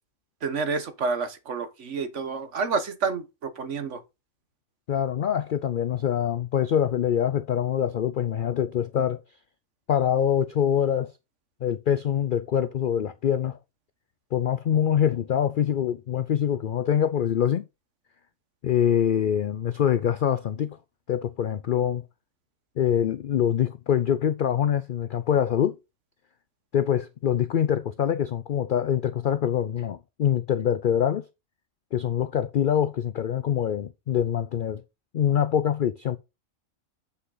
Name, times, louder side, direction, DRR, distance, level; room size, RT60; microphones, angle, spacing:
voice 1, 0.4-4.0, right 4 dB, 60° right, 1.4 m, -29 dB
voice 2, 4.9-9.2 9.9-11.1 11.6-13.6 14.3-17.6 18.6-20.8 21.1-22.0 22.8-25.8 26.7-31.2 31.9-34.8 35.1-36.2, left 9 dB, 75° left, 0.4 m, -24 dB
8.2 x 5.7 x 3.9 m
omnidirectional pair, 1.4 m